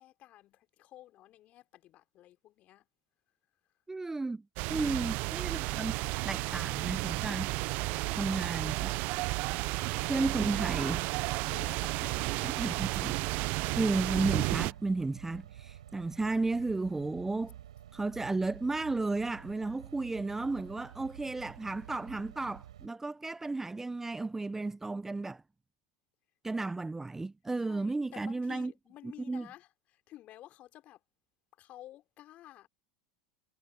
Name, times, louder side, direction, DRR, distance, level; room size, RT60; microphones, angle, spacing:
voice 1, 0.0-2.9 4.9-5.1 6.0-6.1 11.5-13.0 27.7-31.0 31.6-32.7, left 14 dB, 45° left, 3.2 m, -52 dB
voice 2, 3.9-4.4 4.7-6.0 6.2-7.5 8.1-9.0 10.1-11.1 12.4-13.1 13.8-17.5 17.9-25.4 26.4-28.7 29.0-29.5, right 3 dB, 10° right, 0.6 m, -33 dB
sound 1, 4.6-14.7, right 24 dB, 50° right, 0.6 m, -32 dB
sound 2, 5.2-22.9, right 11 dB, 75° right, 7.6 m, -50 dB
hypercardioid pair, 85°, 3 cm